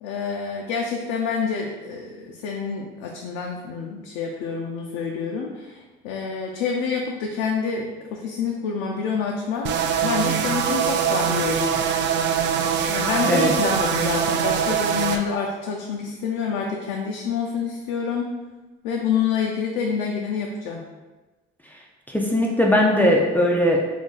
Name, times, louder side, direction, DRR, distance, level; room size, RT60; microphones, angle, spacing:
voice 1, 0.0-11.8 12.9-18.3 18.8-20.9, left 5 dB, 85° left, 0 dB, 0.4 m, -27 dB
sound 1, 9.6-15.2, right 8 dB, 60° right, 0.4 m, -23 dB
voice 2, 22.1-23.9, left 1 dB, 10° left, -1 dB, 0.5 m, -19 dB
3.1 x 2.5 x 3.7 m, 1.2 s
supercardioid pair, 75°, 21 cm